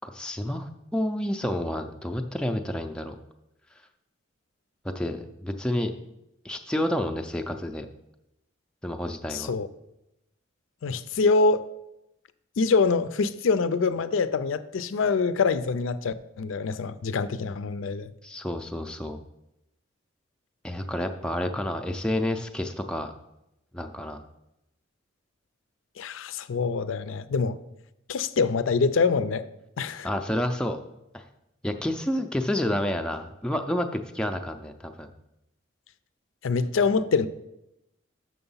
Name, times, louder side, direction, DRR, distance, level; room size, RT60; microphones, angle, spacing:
voice 1, 0.0-3.2 4.8-5.9 6.4-7.9 8.8-9.5 18.2-19.2 20.6-23.1 23.7-24.2 30.0-30.8 31.1-31.2 31.6-35.1, left 1 dB, 5° left, 0.4 m, -29 dB
voice 2, 9.3-9.7 10.8-11.6 12.6-18.1 26.0-27.6 28.1-29.5 29.8-30.1 36.4-37.3, left 4 dB, 80° left, 0.4 m, -25 dB
6.9 x 6.1 x 5.5 m
head